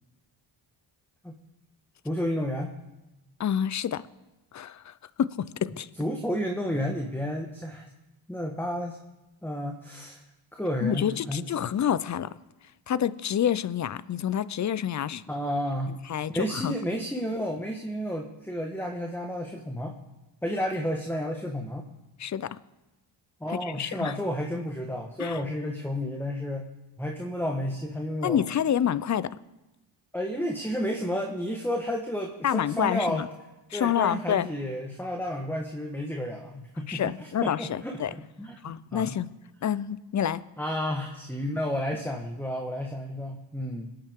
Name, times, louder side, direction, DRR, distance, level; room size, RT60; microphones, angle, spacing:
voice 1, 2.0-2.7 6.0-7.9 8.3-9.0 9.4-10.2 10.5-11.5 15.3-16.0 16.3-20.0 20.4-21.9 23.4-26.7 27.0-28.4 30.1-33.2 33.7-39.2 40.6-44.0, equal, 5° left, 2 dB, 1.3 m, -31 dB
voice 2, 3.4-4.0 4.5-4.9 5.2-5.9 10.8-12.3 12.9-15.2 15.9-16.8 22.2-22.5 23.5-24.1 25.2-25.4 28.2-29.3 32.4-33.3 33.7-34.5 36.9-38.1 38.6-39.3 39.6-40.4, left 9 dB, 35° left, 17 dB, 0.5 m, -28 dB
21.5 x 9.0 x 3.7 m, 1.0 s
cardioid pair, 70°, 50 cm